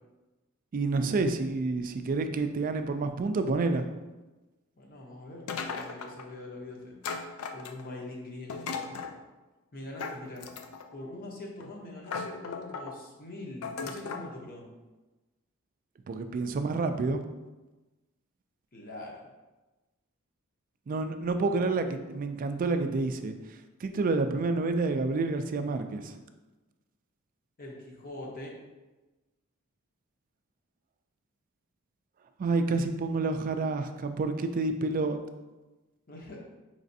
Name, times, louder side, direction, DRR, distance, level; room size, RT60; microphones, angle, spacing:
voice 1, 0.7-3.8 16.1-17.2 20.9-23.4 23.8-26.2 32.4-35.2, right 3 dB, 40° right, 7 dB, 0.3 m, -29 dB
voice 2, 4.8-6.9 7.2-9.0 9.7-10.5 10.9-14.7 16.5-16.6 18.7-19.3 27.6-28.5 36.1-36.4, left 2 dB, 40° left, -2 dB, 0.8 m, -43 dB
sound 1, 5.5-6.3 7.0-8.0 8.5-9.2 10.0-10.9 11.6-11.7 12.1-12.9 13.6-14.3, left 5 dB, 85° left, 0.4 m, -37 dB
4.9 x 3.2 x 2.7 m, 1.1 s
head